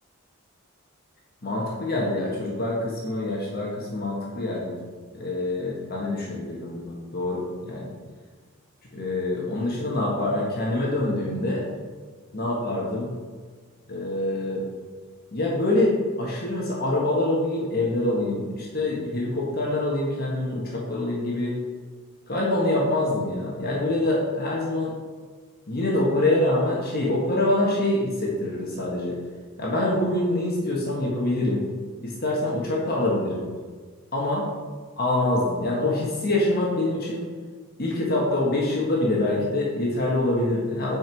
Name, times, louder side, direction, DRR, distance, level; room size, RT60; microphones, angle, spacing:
voice 1, 1.4-4.8 5.1-7.9 8.9-11.6 12.3-13.1 13.9-14.6 15.3-21.6 22.3-24.9 25.7-29.2 29.6-31.6 32.0-33.4 34.1-34.5 35.0-37.3 37.8-41.0, left 1 dB, 45° left, -3 dB, 1.5 m, -25 dB
9.0 x 5.4 x 4.6 m, 1.5 s
head